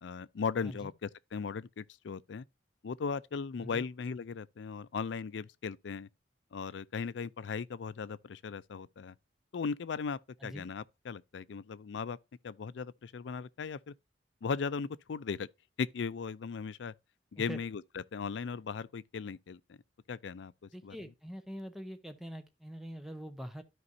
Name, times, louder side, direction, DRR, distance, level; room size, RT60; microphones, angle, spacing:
voice 1, 0.0-2.5 2.8-6.1 6.5-9.1 9.5-12.2 12.4-13.9 14.4-15.5 15.8-16.9 17.3-17.8 18.1-19.8 20.1-20.5 20.8-21.0, left 5 dB, 80° left, 0.4 m, -37 dB
voice 2, 20.7-23.6, equal, ahead, 0.9 m, -44 dB
12.5 x 5.2 x 2.7 m
head